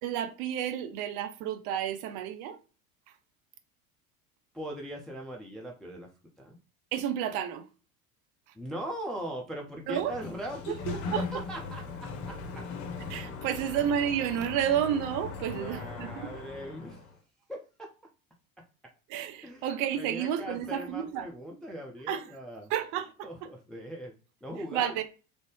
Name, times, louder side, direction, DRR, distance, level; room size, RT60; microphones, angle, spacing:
voice 1, 0.0-2.6 6.9-7.7 9.9-10.1 10.7-11.2 13.1-16.3 19.1-21.3 22.1-22.2 22.7-23.5 24.7-25.0, right 9 dB, 45° right, 0.6 m, -31 dB
voice 2, 4.5-6.1 6.4-6.6 8.5-12.7 13.5-13.6 15.5-17.0 17.5-17.9 19.4-19.7 20.0-22.7 23.2-24.1 24.4-25.0, equal, ahead, 0.3 m, -40 dB
Sliding door, 9.8-17.2, left 4 dB, 45° left, 0.7 m, -39 dB
3.3 x 2.6 x 3.1 m
figure-of-eight pair, 70°, 43 cm